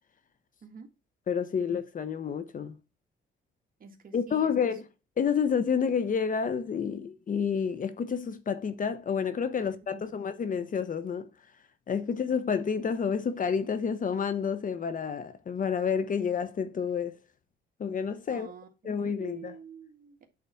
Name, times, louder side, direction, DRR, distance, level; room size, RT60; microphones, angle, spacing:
voice 1, 1.3-2.8 4.1-4.9 5.2-11.3 11.9-17.2 17.8-18.5 18.8-19.6, left 6 dB, 45° left, 0.9 m, -29 dB
voice 2, 3.8-4.5 9.6-10.0 18.3-20.2, right 6 dB, 45° right, 1.9 m, -48 dB
8.5 x 4.1 x 5.9 m
cardioid pair, 105°, 20 cm